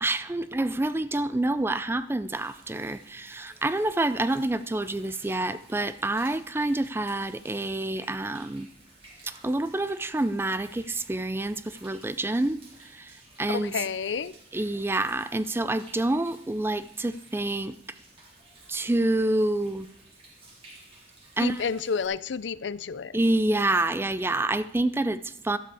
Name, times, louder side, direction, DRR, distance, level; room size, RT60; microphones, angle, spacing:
voice 1, 0.0-8.7 9.2-13.8 14.5-17.8 18.7-19.9 21.4-21.6 23.1-25.6, right 2 dB, 15° right, 0.4 m, -27 dB
Human voice / Rain / Stream, 2.3-22.1, right 2 dB, 30° right, 3.9 m, -54 dB
voice 2, 13.5-14.3 21.4-23.2, left 6 dB, 90° left, 0.5 m, -30 dB
13.0 x 12.0 x 4.8 m
head